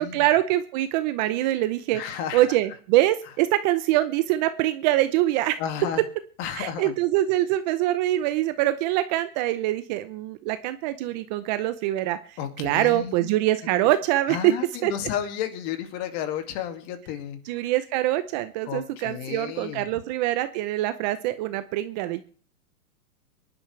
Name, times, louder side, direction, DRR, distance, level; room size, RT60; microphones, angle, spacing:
voice 1, 0.0-5.6 6.5-14.5 14.8-14.9 17.5-22.2, right 15 dB, 30° right, 12 dB, 0.7 m, -24 dB
voice 2, 1.9-2.4 5.6-6.0 6.4-7.0 12.4-13.1 14.3-17.4 18.7-19.9, left 9 dB, 35° left, 6 dB, 2.3 m, -32 dB
24.5 x 11.5 x 3.3 m, 0.43 s
hypercardioid pair, 145°, 45 cm